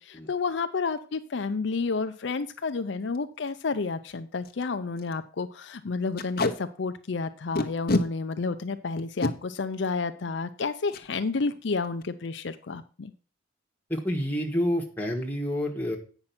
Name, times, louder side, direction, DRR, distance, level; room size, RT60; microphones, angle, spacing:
voice 1, 0.0-13.1, left 4 dB, 60° left, 9 dB, 0.5 m, -30 dB
Packing tape duct tape, 2.5-2.7 3.1-3.2 3.5-3.6 4.1-4.2 4.4-4.6 5.0-5.1 6.2-6.5 7.5-8.0 9.0-9.3 10.9-11.1 11.4-11.6 11.8-12.3, left 2 dB, 45° left, 1.0 m, -26 dB
voice 2, 13.9-16.0, equal, 10° left, 0 dB, 1.7 m, -28 dB
8.8 x 5.9 x 5.8 m, 0.38 s
head